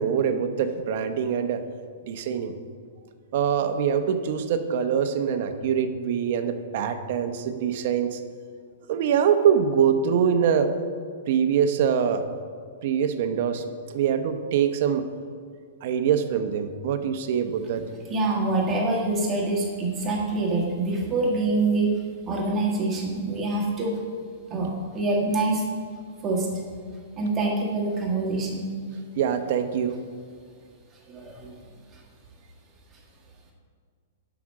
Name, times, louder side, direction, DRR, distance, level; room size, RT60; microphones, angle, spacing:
voice 1, 0.0-1.6 2.1-2.5 3.3-8.2 8.9-10.7 11.3-12.2 12.8-15.0 15.8-17.8 29.2-30.0, right 8 dB, 50° right, 8 dB, 0.8 m, -24 dB
voice 2, 18.1-21.9 22.2-24.0 24.5-24.7 24.9-25.7 26.2-26.5 27.2-28.7 31.1-31.6, right 2 dB, 20° right, -2 dB, 1.7 m, -25 dB
9.8 x 6.0 x 6.4 m, 2.1 s
hypercardioid pair, 165°, 0 cm